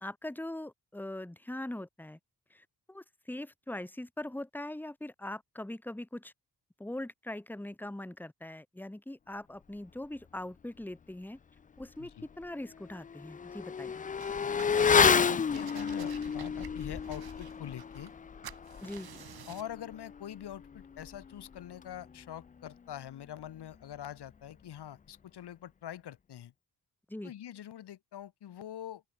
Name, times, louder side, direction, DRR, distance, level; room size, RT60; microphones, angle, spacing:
voice 1, 0.0-2.2 2.5-6.3 6.8-11.4 11.8-14.0 18.8-19.1 27.1-27.3, left 1 dB, 5° left, 1.7 m, -41 dB
Motorcycle / Accelerating revving vroom, 11.8-11.9 12.3-22.3 22.6-22.7, left 6 dB, 20° left, 0.3 m, -31 dB
sound 1, 14.2-15.2 15.5-18.2 18.4-19.8, right 10 dB, 60° right, 1.8 m, -51 dB
voice 2, 15.3-18.1 19.5-26.5 27.2-29.0, left 11 dB, 70° left, 2.1 m, -44 dB
open air
wide cardioid pair, 130°, 41 cm